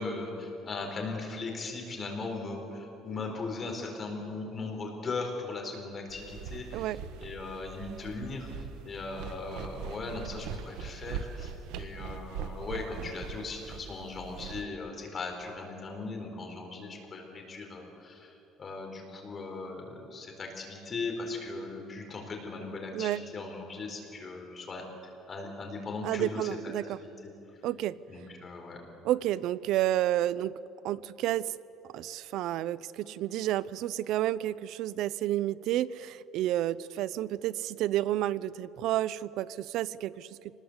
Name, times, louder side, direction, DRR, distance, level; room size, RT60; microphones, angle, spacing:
voice 1, 0.0-24.9 25.3-26.5 27.0-27.3 28.1-28.8, left 3 dB, 25° left, 2 dB, 4.3 m, -38 dB
sound 1, 6.1-14.6, right 7 dB, 85° right, 1.2 m, -41 dB
voice 2, 26.0-27.0 27.6-28.0 29.0-30.6 30.8-31.5 31.9-40.3, right 13 dB, 65° right, 18 dB, 0.6 m, -30 dB
26.0 x 20.0 x 8.1 m, 3.0 s
cardioid pair, 150°, 0 cm